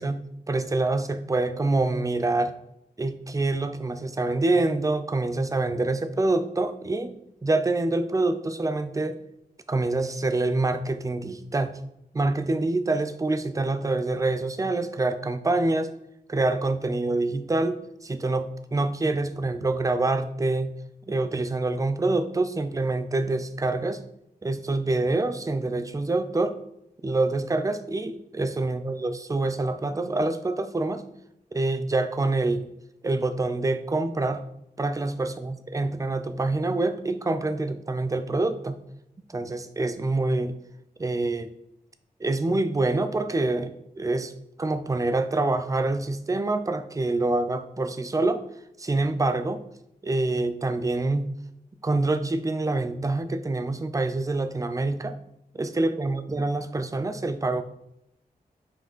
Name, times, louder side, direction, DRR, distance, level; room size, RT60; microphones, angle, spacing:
voice 1, 0.0-2.5 3.0-7.2 7.4-9.2 9.7-11.7 12.1-15.9 16.3-20.7 21.1-24.0 24.4-26.6 27.0-31.1 31.5-32.6 33.0-34.4 34.8-38.8 39.3-40.6 41.0-41.5 42.2-43.7 44.0-44.3 44.6-48.4 48.8-49.6 50.0-51.3 51.8-55.2 55.5-57.6, right 2 dB, 20° right, 10 dB, 0.5 m, -26 dB
5.7 x 5.0 x 5.4 m, 0.80 s
wide cardioid pair, 160°, 16 cm